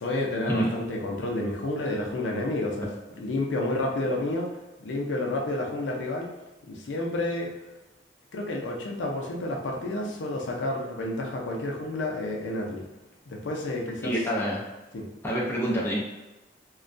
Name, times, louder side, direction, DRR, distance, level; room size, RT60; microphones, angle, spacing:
voice 1, 0.0-2.9 3.2-4.5 4.8-6.3 6.7-7.5 8.3-12.9 13.3-14.1 14.9-15.1, left 2 dB, 85° left, 0 dB, 0.5 m, -30 dB
voice 2, 14.0-14.6 15.2-16.0, equal, 15° left, -5 dB, 0.5 m, -26 dB
2.2 x 2.2 x 2.5 m, 1.1 s
head